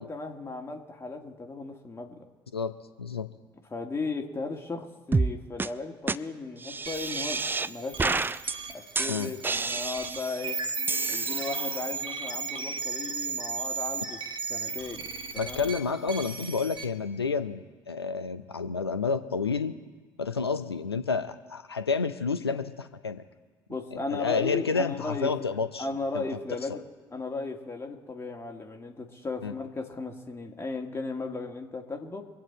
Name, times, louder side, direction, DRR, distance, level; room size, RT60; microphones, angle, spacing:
voice 1, 0.0-2.2 3.7-8.3 8.7-10.6 11.1-14.2 14.5-15.1 15.4-15.7 23.7-25.3 25.8-26.8 27.1-32.2, left 3 dB, 20° left, 1 dB, 2.3 m, -36 dB
voice 2, 2.5-3.3 9.1-9.3 15.4-19.7 20.2-23.2 23.9-25.9 26.1-26.2 29.4-29.5, left 5 dB, 85° left, 10 dB, 0.7 m, -30 dB
sound 1, 5.1-5.3 5.6-5.7 6.1-6.2 6.6-7.7 8.0-8.5 8.9-10.3 10.9-11.8, right 4 dB, 15° right, 0.5 m, -29 dB
sound 2, 6.9-16.8, right 5 dB, 40° right, 1.5 m, -35 dB
25.0 x 8.9 x 4.4 m, 1.3 s
figure-of-eight pair, 55°, 13 cm